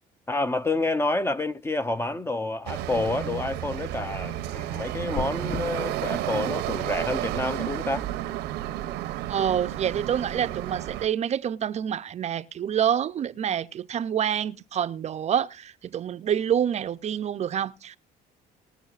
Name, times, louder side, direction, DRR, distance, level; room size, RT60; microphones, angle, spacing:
voice 1, 0.3-8.1, left 2 dB, 15° left, 0.4 m, -28 dB
sound 1, 2.7-11.1, right 13 dB, 90° right, 0.7 m, -31 dB
sound 2, 5.1-5.6, left 5 dB, 50° left, 0.7 m, -33 dB
voice 2, 9.3-18.0, right 9 dB, 40° right, 0.4 m, -27 dB
20.5 x 7.1 x 2.4 m
cardioid pair, 110°, 17 cm